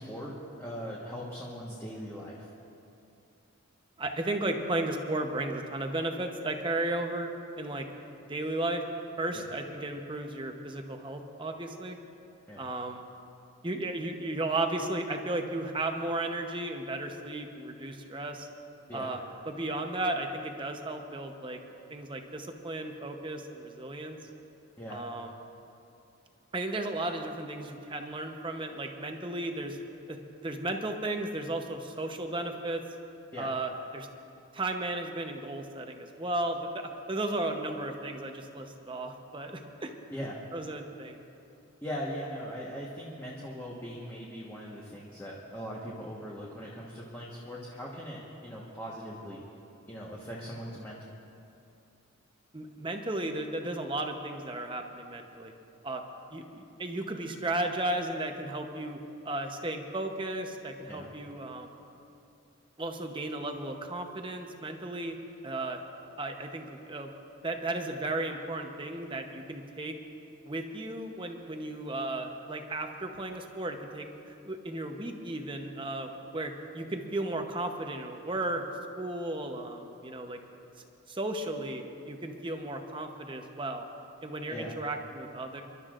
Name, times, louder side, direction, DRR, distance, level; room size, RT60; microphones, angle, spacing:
voice 1, 0.0-2.5 9.3-9.4 12.5-12.6 18.9-19.1 24.8-25.1 33.3-33.5 40.1-40.4 41.8-49.4 49.9-51.1 60.9-61.1 84.5-84.8, equal, 10° left, -5 dB, 1.3 m, -40 dB
voice 2, 4.0-7.3 7.6-7.9 8.3-8.8 9.2-12.0 12.6-13.1 13.6-18.5 18.9-19.2 19.5-21.6 21.9-24.2 24.9-25.3 26.5-29.8 30.1-30.2 30.4-32.8 33.4-34.1 34.5-36.8 37.1-39.9 40.5-41.2 52.5-55.5 55.8-56.0 56.3-59.0 59.2-61.7 62.8-65.2 65.4-65.8 66.2-67.1 67.4-70.0 70.4-78.6 79.0-80.4 81.1-83.9 84.2-85.6, right 2 dB, 25° right, 4 dB, 0.9 m, -34 dB
29.0 x 12.0 x 2.5 m, 2.7 s
head